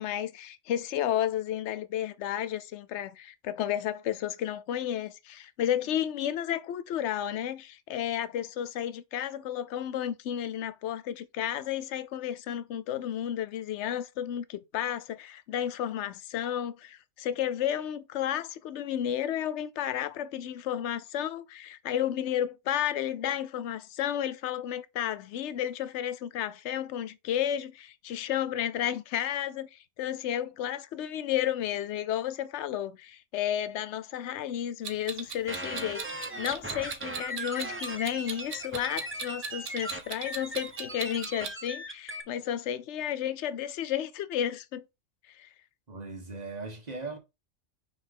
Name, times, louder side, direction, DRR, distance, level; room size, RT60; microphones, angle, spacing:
voice 1, 0.0-44.8 45.4-45.5, left 10 dB, 70° left, 0.9 m, -32 dB
Clock, 34.8-41.5, right 6 dB, 75° right, 1.2 m, -39 dB
sound 1, 35.5-42.2, right 1 dB, 10° right, 0.7 m, -38 dB
voice 2, 45.9-47.2, right 3 dB, 35° right, 1.7 m, -38 dB
5.9 x 5.1 x 3.6 m
omnidirectional pair, 1.3 m